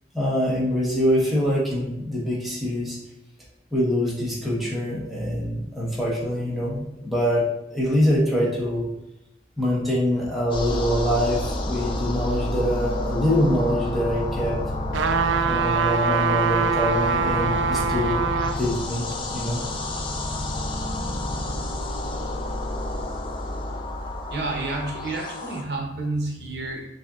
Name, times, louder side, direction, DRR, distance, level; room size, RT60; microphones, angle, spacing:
voice 1, 0.1-3.0 3.7-7.5 7.7-8.9 9.6-14.5 15.5-18.2 18.6-19.0 19.3-19.6, equal, ahead, -7 dB, 1.0 m, -24 dB
sound 1, 10.5-25.6, left 1 dB, 30° left, 0.4 m, -30 dB
sound 2, 14.9-18.6 19.1-19.2, right 5 dB, 85° right, 0.3 m, -23 dB
voice 2, 24.3-26.9, right 2 dB, 65° right, 0 dB, 0.7 m, -29 dB
6.4 x 2.6 x 2.4 m, 0.86 s
head